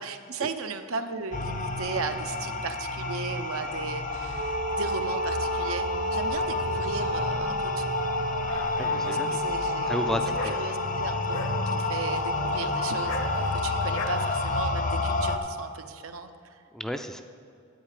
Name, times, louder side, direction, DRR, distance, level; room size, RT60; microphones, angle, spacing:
voice 1, 0.0-8.0 9.0-10.0 10.4-11.4 11.7-16.6, right 4 dB, 85° right, 7 dB, 0.7 m, -36 dB
sound 1, 1.3-15.4, left 3 dB, 40° left, 0.6 m, -30 dB
Wind instrument woodwind instrument, 4.3-14.3, right 2 dB, 45° right, 0.5 m, -34 dB
Dog, 8.0-14.1, left 3 dB, 65° left, 0.9 m, -40 dB
voice 2, 8.8-9.6 9.9-10.5 16.7-17.2, equal, ahead, 7 dB, 0.3 m, -32 dB
10.5 x 8.2 x 4.9 m, 2.4 s
head